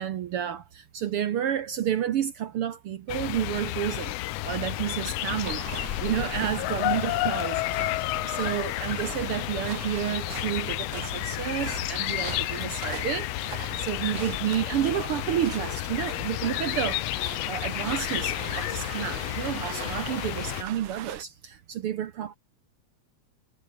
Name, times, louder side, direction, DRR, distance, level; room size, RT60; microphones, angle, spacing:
voice 1, 0.0-4.1 4.4-22.4, right 10 dB, 65° right, 1.5 m, -31 dB
sound 1, 3.1-20.6, left 18 dB, 80° left, 1.5 m, -31 dB
sound 2, 5.4-21.2, right 11 dB, 85° right, 2.9 m, -42 dB
omnidirectional pair, 3.4 m